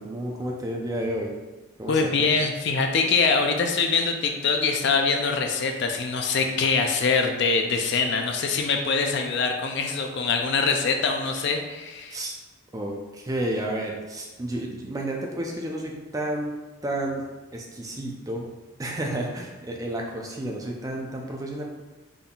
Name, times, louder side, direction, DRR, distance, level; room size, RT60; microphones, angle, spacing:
voice 1, 0.0-1.3 1.8-2.3 7.7-8.0 12.1-12.3 12.7-17.2 17.5-18.5 18.8-21.6, right 1 dB, 15° right, 0 dB, 0.3 m, -31 dB
voice 2, 1.9-12.2, left 4 dB, 55° left, 4 dB, 0.4 m, -24 dB
4.0 x 3.6 x 2.3 m, 1.2 s
head